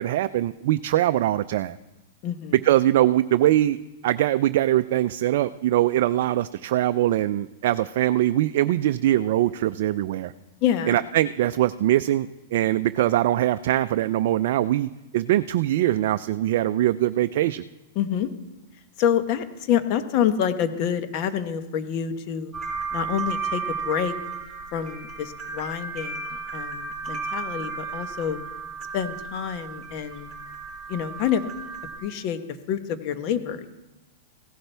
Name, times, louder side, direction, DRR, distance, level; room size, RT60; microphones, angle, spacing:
voice 1, 0.0-1.8 2.6-3.8 4.0-10.3 10.9-17.6, right 13 dB, 60° right, 11 dB, 0.4 m, -22 dB
voice 2, 2.2-2.5 10.6-11.0 17.9-18.3 19.0-22.5 22.9-24.1 24.7-28.4 28.9-30.3 30.9-31.5 32.0-33.7, left 9 dB, 45° left, 9 dB, 1.1 m, -27 dB
sound 1, 22.5-32.0, right 5 dB, 15° right, 3.9 m, -34 dB
16.0 x 11.5 x 3.4 m, 1.0 s
hypercardioid pair, 120°, 0 cm